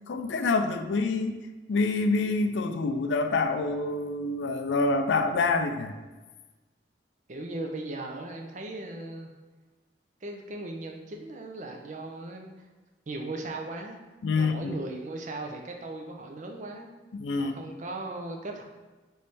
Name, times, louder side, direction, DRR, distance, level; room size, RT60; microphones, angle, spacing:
voice 1, 0.1-1.4 1.7-5.9 14.2-14.8 17.1-17.5, left 3 dB, 75° left, 7 dB, 0.4 m, -26 dB
voice 2, 7.3-9.3 10.2-12.5 13.1-14.0 14.4-16.9 17.4-18.6, right 2 dB, 40° right, 2 dB, 0.5 m, -37 dB
3.4 x 3.2 x 4.1 m, 1.2 s
head